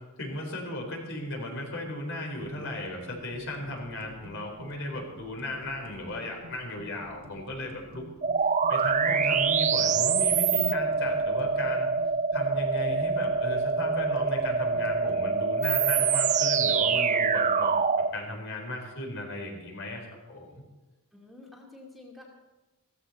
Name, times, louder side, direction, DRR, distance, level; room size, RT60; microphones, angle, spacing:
voice 1, 0.2-8.0 8.7-11.9 12.3-17.8 18.1-20.6, left 1 dB, 60° left, 1 dB, 4.1 m, -36 dB
sound 1, 2.4-15.3, equal, 75° right, 2.2 m, -49 dB
sound 2, 8.2-18.1, right 5 dB, 35° right, 0.5 m, -25 dB
voice 2, 21.1-22.2, left 2 dB, ahead, -3 dB, 2.4 m, -49 dB
16.0 x 15.5 x 4.4 m, 1.1 s
head